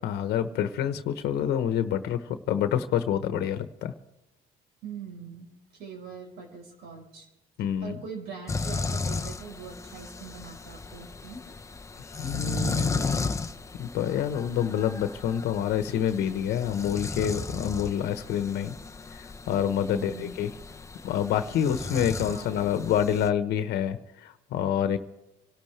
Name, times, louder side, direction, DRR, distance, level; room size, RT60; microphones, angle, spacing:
voice 1, 0.0-3.9 7.6-8.0 12.2-13.3 13.8-18.7 19.1-20.5 21.0-25.0, left 9 dB, 75° left, 9 dB, 1.1 m, -27 dB
voice 2, 4.8-5.5 5.7-7.3 7.6-11.4 19.9-20.5 22.2-22.8, right 5 dB, 80° right, 3 dB, 4.6 m, -42 dB
sound 1, 8.5-23.3, left 3 dB, 15° left, 0.8 m, -35 dB
26.5 x 12.0 x 3.4 m, 0.99 s
cardioid pair, 110°, 17 cm